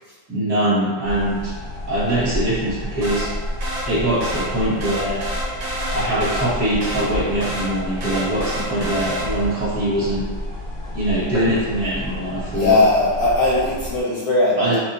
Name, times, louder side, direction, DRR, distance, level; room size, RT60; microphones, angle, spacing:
voice 1, 0.3-1.5 1.9-3.3 3.9-5.2 5.9-10.3 10.9-12.8 14.6-14.8, right 1 dB, 55° right, -9 dB, 1.8 m, -22 dB
sound 1, 1.0-14.0, left 1 dB, 35° left, 0.6 m, -31 dB
sound 2, 3.0-9.6, right 1 dB, 80° right, 2.0 m, -30 dB
voice 2, 12.5-14.8, left 2 dB, 65° left, -5 dB, 1.0 m, -18 dB
4.6 x 2.8 x 2.5 m, 1.5 s
omnidirectional pair, 2.0 m